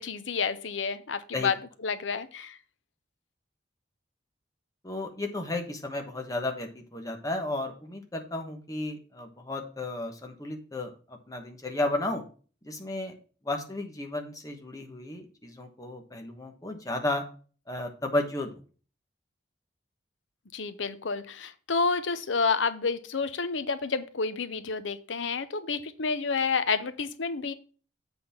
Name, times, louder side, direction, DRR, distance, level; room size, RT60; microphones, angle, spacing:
voice 1, 0.0-1.5 1.8-2.6 20.5-27.5, left 5 dB, 80° left, 13 dB, 0.7 m, -29 dB
voice 2, 4.8-12.2 12.6-13.1 13.4-17.2 17.7-18.5, left 2 dB, 20° left, 3 dB, 1.1 m, -33 dB
7.8 x 4.0 x 6.8 m, 0.38 s
head